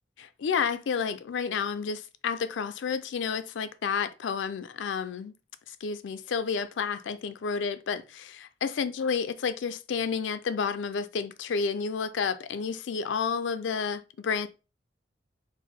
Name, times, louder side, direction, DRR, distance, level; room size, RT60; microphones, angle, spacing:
voice 1, 0.2-5.3 5.7-14.5, left 6 dB, 80° left, 0.4 m, -30 dB
4.6 x 2.1 x 4.3 m
head